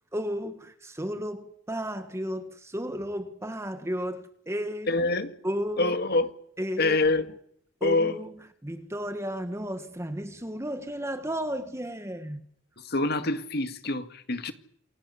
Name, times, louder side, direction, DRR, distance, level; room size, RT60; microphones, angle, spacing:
voice 1, 0.1-4.9 5.4-5.9 6.6-7.0 7.8-8.3 8.6-12.4, equal, 15° right, 1.6 m, -33 dB
voice 2, 4.9-5.3 5.8-6.3 6.8-7.3 7.8-8.2 12.9-14.5, left 2 dB, 55° left, 2.0 m, -25 dB
28.0 x 18.5 x 8.5 m
head